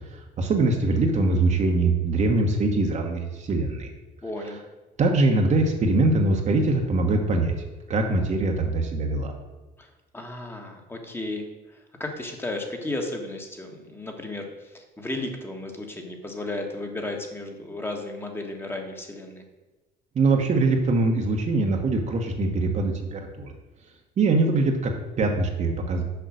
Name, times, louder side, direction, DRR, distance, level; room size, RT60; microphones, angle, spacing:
voice 1, 0.1-3.9 5.0-7.5 7.9-9.3 20.1-23.5 24.2-26.0, right 3 dB, 45° right, 2 dB, 1.1 m, -23 dB
voice 2, 4.2-4.6 9.8-19.4, left 2 dB, 15° left, 3 dB, 1.4 m, -34 dB
6.8 x 5.5 x 6.3 m, 1.1 s
cardioid pair, 110°, 17 cm